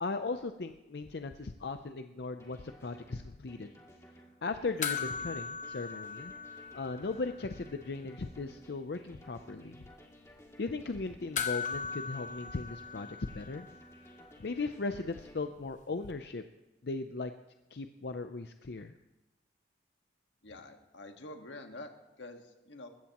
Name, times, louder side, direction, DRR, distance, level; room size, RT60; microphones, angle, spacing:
voice 1, 0.0-3.7 4.4-9.8 10.6-13.7 14.4-16.4 16.8-17.3 17.7-18.9, left 3 dB, 65° left, 8 dB, 0.5 m, -38 dB
sound 1, 2.4-15.4, equal, 15° left, 1.9 m, -56 dB
sound 2, 4.8-7.5 7.7-7.8 11.3-13.9 16.1-16.2, left 6 dB, 45° left, 1.0 m, -38 dB
voice 2, 20.4-22.9, left 2 dB, 85° left, 4 dB, 1.6 m, -47 dB
20.5 x 16.0 x 3.0 m, 1.0 s
head